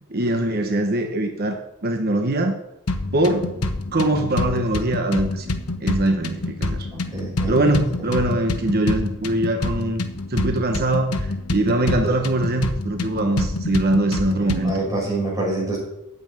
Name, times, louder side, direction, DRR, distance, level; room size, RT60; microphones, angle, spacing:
voice 1, 0.1-2.6 3.1-3.5 3.9-5.5 5.8-6.9 7.5-10.0 10.3-14.8, right 1 dB, 45° right, 5 dB, 1.1 m, -22 dB
sound 1, 2.9-14.9, left 2 dB, 70° left, 1.2 m, -27 dB
voice 2, 6.9-7.7 14.3-15.8, right 2 dB, 15° right, -3 dB, 5.9 m, -27 dB
9.5 x 8.1 x 8.8 m, 0.85 s
head